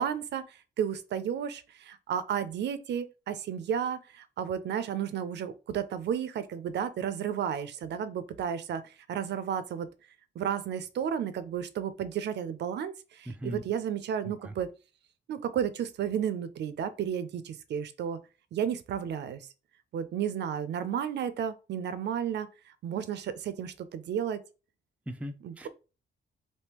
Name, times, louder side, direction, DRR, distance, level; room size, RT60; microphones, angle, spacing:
voice 1, 0.0-9.9 10.4-14.7 15.3-18.2 18.5-19.4 19.9-22.5 22.8-24.4 25.4-25.7, right 8 dB, 70° right, 0.4 m, -32 dB
voice 2, 13.3-13.6 14.2-14.5 25.1-25.7, right 1 dB, 5° right, 0.4 m, -39 dB
3.5 x 2.7 x 2.9 m
cardioid pair, 135°, 19 cm